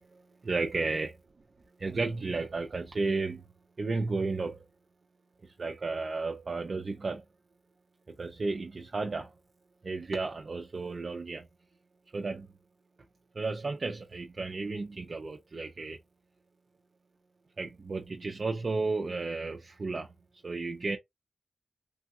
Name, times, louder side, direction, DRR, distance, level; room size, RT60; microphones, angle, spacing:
voice 1, 0.1-1.1 1.8-3.4 3.8-4.6 5.6-7.2 8.1-9.3 9.8-11.5 12.1-12.5 13.3-16.0 17.6-20.1 20.4-21.0, right 3 dB, 50° right, 0.5 m, -33 dB
3.2 x 2.3 x 2.6 m
wide cardioid pair, 90°, 0 cm